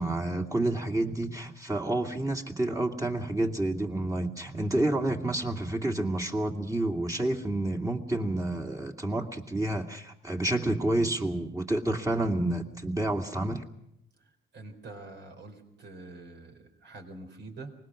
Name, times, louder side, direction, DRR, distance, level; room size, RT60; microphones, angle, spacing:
voice 1, 0.0-13.7, right 1 dB, 15° right, 3 dB, 2.3 m, -29 dB
voice 2, 14.2-17.7, right 2 dB, 60° right, 5 dB, 4.3 m, -46 dB
24.5 x 20.5 x 6.3 m, 0.79 s
cardioid pair, 90°, 20 cm